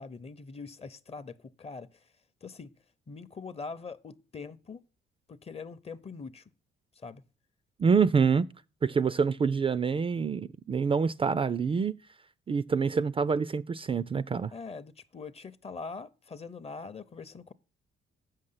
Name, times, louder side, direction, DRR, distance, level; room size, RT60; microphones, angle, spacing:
voice 1, 0.0-2.1 2.4-2.7 3.1-4.8 5.3-6.4 7.0-7.2 14.5-17.5, left 4 dB, 30° left, 0.6 m, -43 dB
voice 2, 7.8-8.5 8.8-12.0 12.5-14.5, right 5 dB, 30° right, 0.3 m, -26 dB
8.2 x 6.6 x 5.6 m
cardioid pair, 90°, 20 cm